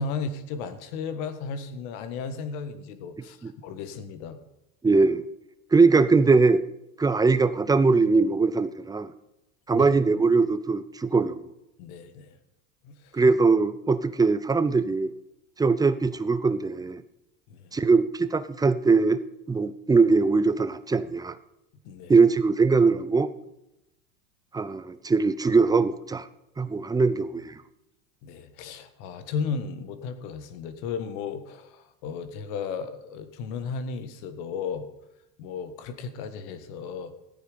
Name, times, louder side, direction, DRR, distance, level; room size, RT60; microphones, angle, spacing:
voice 1, 0.0-4.4 9.7-9.9 11.8-12.4 12.8-13.2 17.5-17.7 21.8-22.1 28.2-34.9 35.4-37.1, left 5 dB, 65° left, 11 dB, 1.7 m, -35 dB
voice 2, 4.8-5.2 5.7-6.6 7.0-9.1 9.7-11.4 13.1-15.1 15.6-17.0 17.7-19.2 19.5-21.4 22.1-23.3 24.5-26.3 26.6-27.6, right 4 dB, 10° right, 13 dB, 0.5 m, -21 dB
14.5 x 9.4 x 5.1 m, 0.90 s
hypercardioid pair, 95°, 49 cm